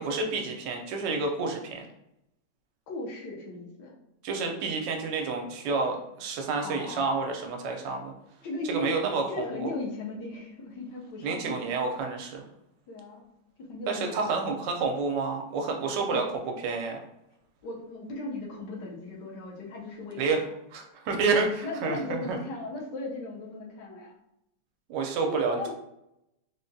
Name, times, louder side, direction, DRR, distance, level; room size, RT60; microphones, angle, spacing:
voice 1, 0.0-1.8 4.2-8.1 8.7-9.7 11.2-12.4 13.9-16.2 16.6-17.0 20.2-20.4 20.7-22.4 24.9-25.7, right 4 dB, 80° right, 3 dB, 1.2 m, -29 dB
voice 2, 2.9-3.9 6.6-7.1 8.4-9.0 9.3-11.5 12.9-13.2 13.6-14.5 16.1-16.3 17.6-20.2 21.6-24.1 25.2-25.7, left 2 dB, 75° left, -2 dB, 1.3 m, -37 dB
3.6 x 2.1 x 2.6 m, 0.82 s
omnidirectional pair, 1.9 m